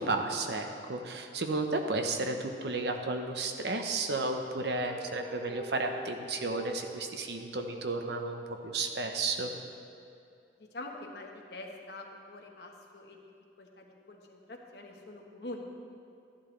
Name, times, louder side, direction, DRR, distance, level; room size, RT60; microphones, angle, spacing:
voice 1, 0.0-9.5, right 3 dB, 75° right, 4 dB, 0.9 m, -33 dB
sound 1, 4.8-7.0, right 1 dB, 5° left, 1.6 m, -46 dB
voice 2, 10.6-13.2 13.6-15.7, left 2 dB, 70° left, 2 dB, 1.2 m, -45 dB
12.5 x 11.5 x 3.2 m, 2.5 s
head